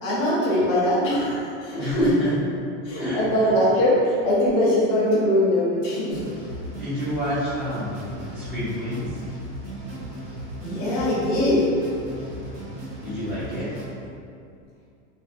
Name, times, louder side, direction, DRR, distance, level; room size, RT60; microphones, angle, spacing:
voice 1, 0.0-2.0 2.8-6.2 10.6-11.7, left 1 dB, 30° left, -8 dB, 0.7 m, -21 dB
voice 2, 1.8-2.3 3.0-3.6 6.7-9.2 13.0-13.7, left 1 dB, 5° right, -17 dB, 0.6 m, -29 dB
sound 1, 6.1-13.9, right 1 dB, 70° right, 1.2 m, -37 dB
2.5 x 2.5 x 2.5 m, 2.4 s
supercardioid pair, 170°, 38 cm